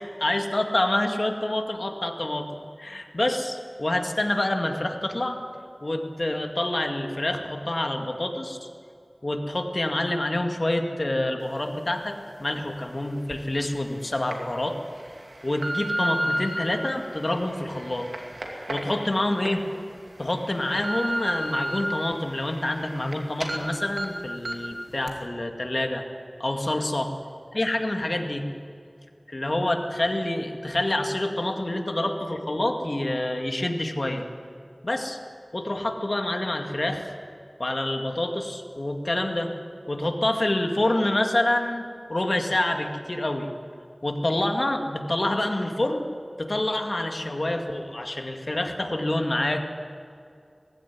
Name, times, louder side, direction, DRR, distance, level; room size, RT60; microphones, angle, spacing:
voice 1, 0.2-2.5 2.8-5.4 5.8-8.7 9.2-14.8 15.4-18.1 18.7-19.6 20.2-26.0 26.4-27.1 27.5-28.4 29.3-34.3 34.8-35.2 35.5-37.1 37.6-39.5 39.9-41.8 42.1-43.5 44.0-46.0 46.4-49.6, left 1 dB, 55° left, 4 dB, 2.1 m, -27 dB
sound 1, 13.3-13.4 14.0-14.3 15.0-16.6 17.2-19.5 20.0-20.1 20.5-21.8 22.2-23.1 23.4-23.6 24.0-24.1 24.4-24.7 25.1-25.2, right 1 dB, 85° right, 2.5 m, -31 dB
19.5 x 15.5 x 9.6 m, 2.4 s
wide cardioid pair, 40°, 0 cm